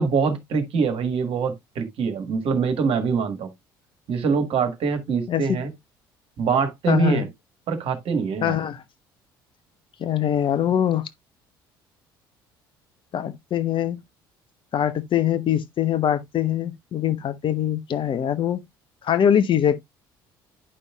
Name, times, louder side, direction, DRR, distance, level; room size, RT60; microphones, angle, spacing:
voice 1, 0.0-3.5 4.1-5.7 6.4-7.3 7.7-8.6, right 5 dB, 55° right, 1.6 m, -24 dB
voice 2, 5.3-5.6 6.9-7.2 8.4-8.8 10.0-11.1 13.1-14.0 14.7-18.6 19.0-19.8, left 10 dB, 45° left, 0.9 m, -23 dB
9.8 x 5.4 x 2.3 m
hypercardioid pair, 60°, 11 cm